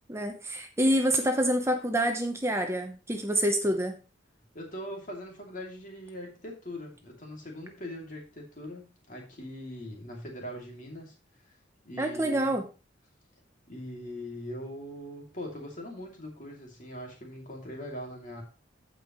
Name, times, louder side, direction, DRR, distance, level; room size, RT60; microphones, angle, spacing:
voice 1, 0.1-4.0 12.0-12.6, equal, 15° right, 5 dB, 0.8 m, -27 dB
voice 2, 4.5-11.1 11.8-12.5 13.7-18.4, equal, 45° left, 0 dB, 2.7 m, -41 dB
14.5 x 5.3 x 3.1 m, 0.32 s
head